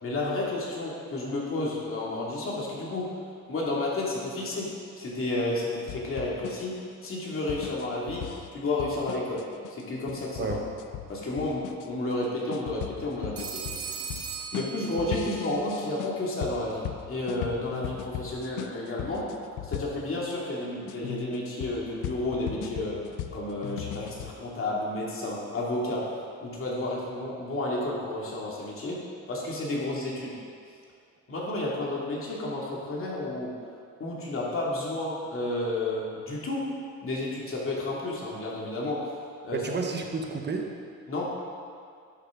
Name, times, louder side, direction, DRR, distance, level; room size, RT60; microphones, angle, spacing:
voice 1, 0.0-3.1 3.5-9.4 9.7-10.6 11.1-13.6 14.5-19.3 19.6-23.0 23.3-29.0 29.3-30.4 31.3-33.5 34.0-36.7 37.0-39.2 39.4-39.7 41.1-41.2, left 2 dB, 45° left, -4 dB, 2.4 m, -31 dB
sound 1, 5.9-20.4 20.9-24.3, left 12 dB, 85° left, 0.5 m, -39 dB
Telephone, 13.4-15.4, right 6 dB, 50° right, 1.0 m, -38 dB
voice 2, 39.5-40.7, right 4 dB, 35° right, 2 dB, 1.1 m, -31 dB
11.0 x 6.7 x 3.8 m, 2.2 s
cardioid pair, 90°, 30 cm